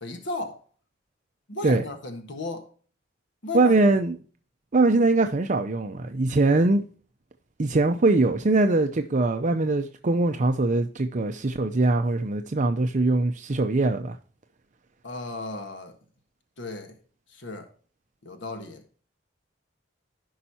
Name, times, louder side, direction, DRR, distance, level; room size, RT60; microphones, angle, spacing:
voice 1, 0.0-0.6 1.5-2.7 3.4-3.7 15.0-15.9 16.6-16.9 17.3-17.7 18.2-18.8, left 2 dB, 70° left, 1.5 m, -35 dB
voice 2, 3.5-4.1 4.7-6.8 7.6-14.2, right 2 dB, 40° right, 0.6 m, -22 dB
15.5 x 5.6 x 2.8 m
head